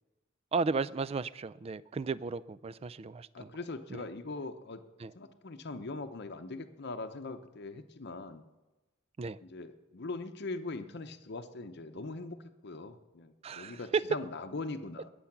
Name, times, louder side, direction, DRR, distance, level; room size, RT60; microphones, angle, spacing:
voice 1, 0.5-3.5 3.9-4.0 5.0-5.1 9.2-9.4 13.4-14.0, right 4 dB, 30° right, 19 dB, 0.3 m, -34 dB
voice 2, 3.3-4.8 5.1-8.4 9.4-12.4 12.6-15.1, left 3 dB, 55° left, 7 dB, 0.8 m, -41 dB
20.0 x 7.0 x 5.9 m, 1.1 s
head